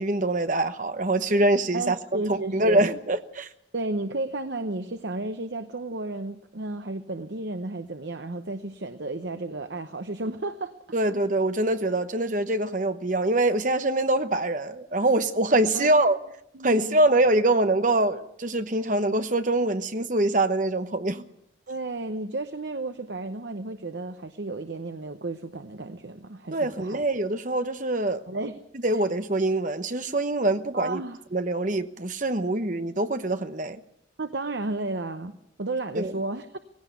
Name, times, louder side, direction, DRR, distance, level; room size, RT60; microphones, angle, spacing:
voice 1, 0.0-3.5 10.9-16.2 16.6-21.2 26.5-28.2 28.8-31.0 31.3-33.8 35.9-36.2, right 2 dB, 40° right, 1.1 m, -24 dB
voice 2, 1.7-2.9 3.7-10.7 11.1-11.2 15.7-16.0 16.5-17.0 21.7-27.0 28.3-28.6 28.9-29.0 30.7-31.2 34.2-36.6, right 2 dB, 65° right, 0.9 m, -33 dB
19.5 x 17.0 x 8.2 m
head